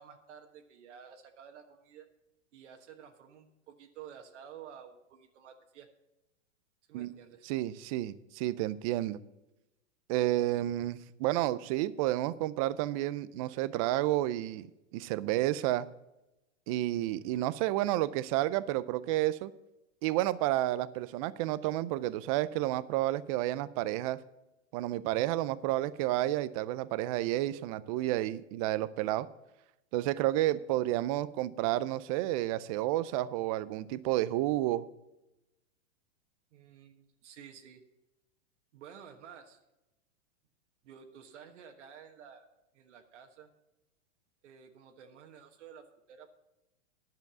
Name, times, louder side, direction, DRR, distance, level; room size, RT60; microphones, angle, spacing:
voice 1, 0.0-2.1 2.5-5.9 6.9-7.5 36.5-37.8 38.7-39.6 40.8-42.5 42.7-43.5 44.4-46.3, right 8 dB, 70° right, 4 dB, 1.4 m, -52 dB
voice 2, 7.4-9.2 10.1-14.7 14.9-15.9 16.7-19.5 20.0-24.2 24.7-29.3 29.9-34.8, right 15 dB, 30° right, 17 dB, 0.4 m, -30 dB
11.0 x 6.9 x 6.9 m, 0.94 s
hypercardioid pair, 135°, 37 cm